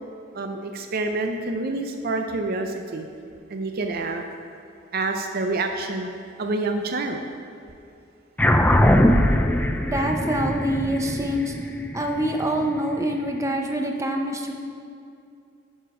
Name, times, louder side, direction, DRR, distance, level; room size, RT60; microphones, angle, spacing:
voice 1, 0.3-3.1 3.5-4.2 4.9-6.1 6.4-7.2, right 2 dB, 50° right, 5 dB, 0.5 m, -27 dB
sound 1, 8.4-13.1, left 1 dB, 10° left, 0.3 m, -21 dB
voice 2, 9.8-14.5, right 1 dB, 15° right, 2 dB, 0.7 m, -26 dB
10.5 x 5.1 x 4.9 m, 2.5 s
head